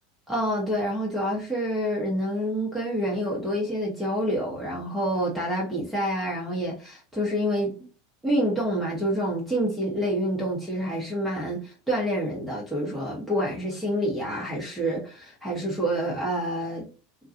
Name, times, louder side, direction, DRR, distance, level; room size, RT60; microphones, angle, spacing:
voice 1, 0.3-7.7 8.2-16.9, equal, 5° right, 0.9 m, -27 dB
2.3 x 2.3 x 2.6 m
figure-of-eight pair, 85°, 0 cm